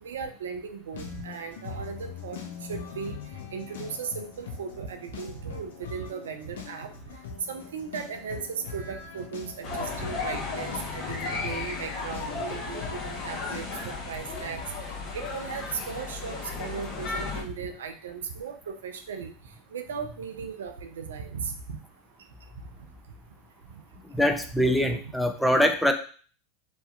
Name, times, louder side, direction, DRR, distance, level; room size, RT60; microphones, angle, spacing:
voice 1, 0.0-2.4 2.7-3.2 3.5-6.9 7.5-14.6 15.1-19.3 19.7-21.8, right 6 dB, 75° right, 6 dB, 0.3 m, -37 dB
sound 1, 0.9-13.7, left 6 dB, 75° left, 0.5 m, -42 dB
sound 2, 9.6-17.4, left 4 dB, 45° left, 0.9 m, -34 dB
voice 2, 24.0-25.9, equal, ahead, 4 dB, 0.4 m, -23 dB
2.7 x 2.2 x 2.3 m, 0.42 s
hypercardioid pair, 90°, 0 cm